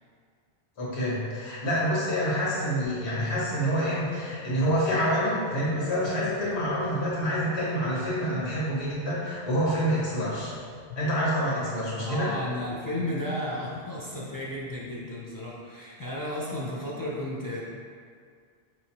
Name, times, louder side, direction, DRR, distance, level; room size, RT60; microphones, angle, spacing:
voice 1, 0.8-10.5 10.9-12.3, equal, 90° left, -7 dB, 1.4 m, -27 dB
sound 1, 2.8-15.1, left 5 dB, 65° left, 0.7 m, -45 dB
voice 2, 12.0-17.6, left 1 dB, 35° left, -6 dB, 0.3 m, -33 dB
5.1 x 3.1 x 2.8 m, 2.1 s
omnidirectional pair, 1.1 m